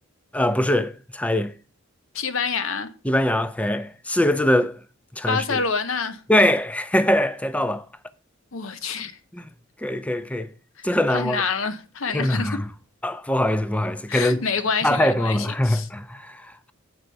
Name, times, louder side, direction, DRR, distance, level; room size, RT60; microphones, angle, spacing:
voice 1, 0.3-1.5 3.0-4.7 5.1-5.6 6.3-7.9 9.3-9.5 9.8-10.5 10.8-11.4 12.1-12.6 13.0-14.4 14.8-16.7, left 1 dB, 5° left, 0.5 m, -22 dB
voice 2, 2.1-2.9 5.3-6.2 8.5-9.1 10.8-12.6 14.1-15.9, left 5 dB, 75° left, 0.9 m, -27 dB
8.0 x 4.4 x 6.5 m
head